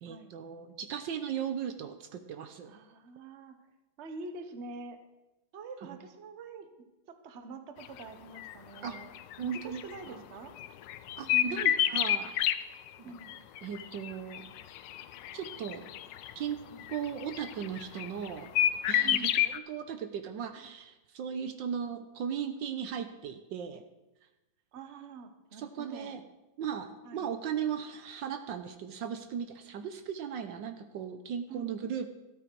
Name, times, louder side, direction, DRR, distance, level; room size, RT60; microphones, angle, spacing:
voice 1, 0.0-2.7 5.9-6.0 8.8-9.0 9.4-9.8 10.1-10.2 11.2-12.3 13.0-13.1 13.6-14.5 15.3-15.9 16.3-16.6 16.9-18.5 18.9-23.8 25.5-26.2 26.6-32.1, right 8 dB, 70° right, 9 dB, 1.4 m, -37 dB
voice 2, 2.7-3.6 4.0-5.0 5.5-9.1 9.4-10.5 11.3-11.9 13.0-13.5 16.7-16.9 19.0-19.4 24.7-26.1 27.0-27.3 31.5-31.8, right 3 dB, 40° right, 8 dB, 1.1 m, -45 dB
sound 1, 7.9-8.0 8.4-8.5 8.8-10.0 10.6-12.6 13.3-16.3 16.8-18.3 18.6-19.6, left 12 dB, 75° left, 1.2 m, -29 dB
13.0 x 13.0 x 4.6 m, 1.0 s
omnidirectional pair, 2.2 m